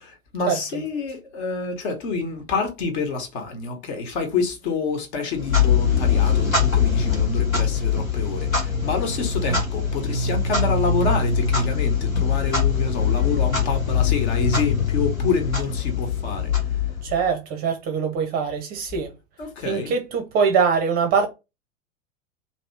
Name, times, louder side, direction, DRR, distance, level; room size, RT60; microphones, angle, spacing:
voice 1, 0.1-16.9 19.4-19.9, left 4 dB, 50° left, 1.2 m, -27 dB
Clock, 5.4-17.3, left 6 dB, 85° left, 1.1 m, -22 dB
voice 2, 17.0-19.1 19.6-21.3, right 6 dB, 25° right, 0.6 m, -23 dB
2.9 x 2.8 x 4.3 m
figure-of-eight pair, 95°, 40 cm